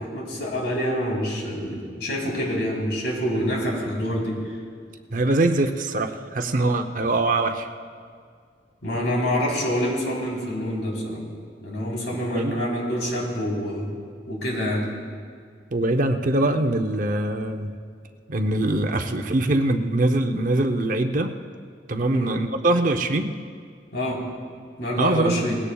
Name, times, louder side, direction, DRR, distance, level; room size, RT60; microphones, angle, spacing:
voice 1, 0.0-4.3 8.8-11.2 11.6-13.9 14.3-14.8 22.1-22.3 23.9-24.2 24.8-25.6, equal, 75° left, -3 dB, 3.7 m, -26 dB
voice 2, 5.1-7.7 12.2-12.6 15.7-17.7 18.3-21.3 21.9-23.3 25.0-25.6, right 2 dB, 50° right, 6 dB, 0.7 m, -23 dB
20.0 x 17.0 x 2.3 m, 2.1 s
head